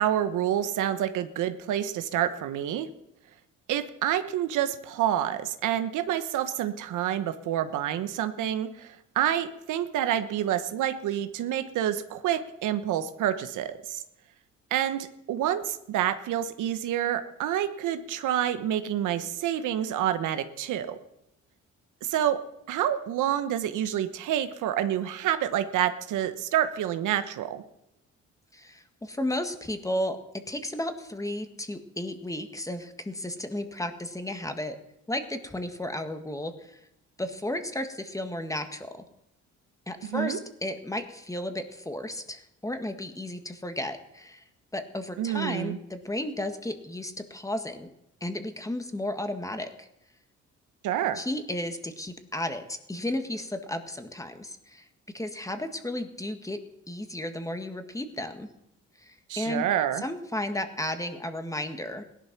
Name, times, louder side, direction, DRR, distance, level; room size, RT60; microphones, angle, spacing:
voice 1, 0.0-2.9 3.7-14.0 14.7-21.0 22.0-22.4 22.7-27.6 40.0-40.4 45.2-45.8 50.8-51.2 59.3-60.0, right 11 dB, 85° right, 10 dB, 1.1 m, -28 dB
voice 2, 28.5-34.8 35.1-36.8 37.2-39.0 39.9-44.4 44.7-47.9 48.2-49.9 51.1-54.9 55.1-56.6 56.9-58.5 59.0-59.6 60.0-62.0, left 1 dB, 10° left, 7 dB, 1.7 m, -33 dB
17.0 x 11.5 x 6.0 m, 0.82 s
cardioid pair, 90°, 30 cm